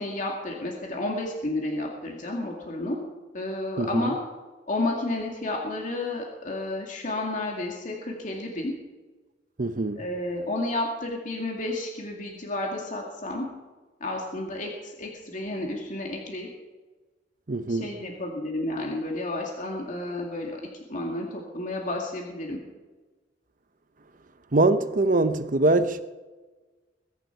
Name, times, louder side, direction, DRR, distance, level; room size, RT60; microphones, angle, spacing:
voice 1, 0.0-3.0 3.3-4.2 4.7-8.7 10.0-13.5 14.0-16.5 17.7-20.6 20.9-22.6, left 2 dB, 45° left, 2.2 m, -31 dB
voice 2, 3.8-4.1 9.6-10.0 17.5-17.9 24.5-26.0, right 2 dB, 45° right, 0.8 m, -23 dB
21.5 x 11.0 x 4.6 m
head